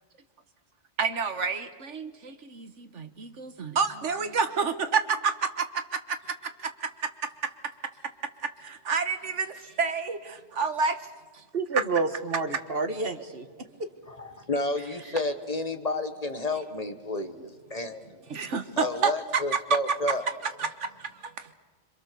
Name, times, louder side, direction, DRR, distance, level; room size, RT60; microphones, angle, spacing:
voice 1, 1.0-7.5 8.4-11.0 11.3-11.4 11.7-11.8 12.5-12.6 18.3-19.6 20.1-20.2 20.4-21.5, right 5 dB, 85° right, 9 dB, 1.7 m, -29 dB
voice 2, 11.5-13.5 13.8-13.9, right 4 dB, 55° right, 8 dB, 1.8 m, -29 dB
voice 3, 14.1-18.1 18.8-20.2, left 2 dB, 35° left, 8 dB, 1.3 m, -31 dB
27.0 x 25.5 x 6.9 m, 1.4 s
omnidirectional pair, 1.2 m